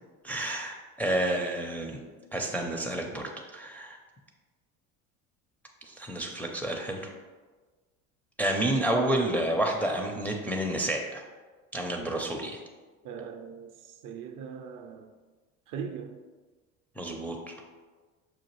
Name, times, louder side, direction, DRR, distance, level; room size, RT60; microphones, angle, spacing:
voice 1, 0.2-2.0 2.3-4.0 5.9-7.0 8.4-11.2 11.7-12.6 17.0-17.5, right 1 dB, 5° left, 0.4 m, -30 dB
voice 2, 13.0-13.7 14.0-15.1 15.7-16.2, right 6 dB, 55° right, 0.5 m, -40 dB
5.7 x 2.4 x 3.0 m
hypercardioid pair, 75°, 40 cm